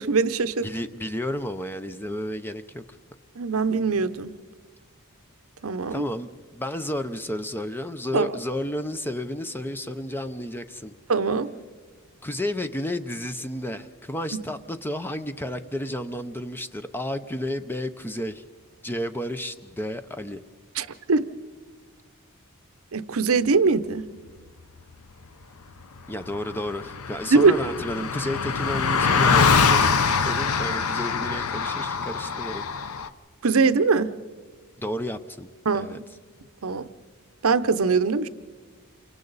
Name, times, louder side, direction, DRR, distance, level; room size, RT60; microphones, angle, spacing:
voice 1, 0.0-0.7 3.4-4.3 5.6-6.1 8.1-8.3 11.1-11.5 20.8-21.3 22.9-24.1 27.3-27.6 33.4-34.1 35.7-36.0 36.6-36.9 37.4-38.3, right 4 dB, 70° right, 12 dB, 0.7 m, -22 dB
voice 2, 0.6-3.0 5.9-10.9 12.2-18.4 18.8-20.4 26.1-32.7 34.8-36.0, left 1 dB, 10° left, 10 dB, 0.6 m, -32 dB
Car passing by, 26.0-26.1 26.2-33.1, left 5 dB, 75° left, 0.8 m, -23 dB
28.5 x 24.5 x 4.1 m, 1.5 s
head